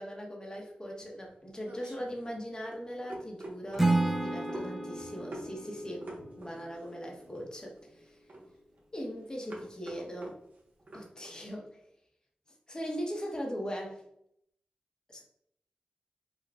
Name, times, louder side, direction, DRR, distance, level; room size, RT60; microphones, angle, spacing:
voice 1, 0.0-6.1 6.4-8.2 8.9-10.4 10.9-11.8 12.7-14.0 15.1-15.2, equal, 25° left, 0 dB, 0.8 m, -40 dB
sound 1, 1.0-11.4, right 1 dB, 60° right, 1.0 m, -47 dB
Acoustic guitar / Strum, 3.8-6.9, right 2 dB, 10° right, 0.5 m, -31 dB
4.7 x 2.2 x 2.2 m, 0.73 s
wide cardioid pair, 65°, 3 cm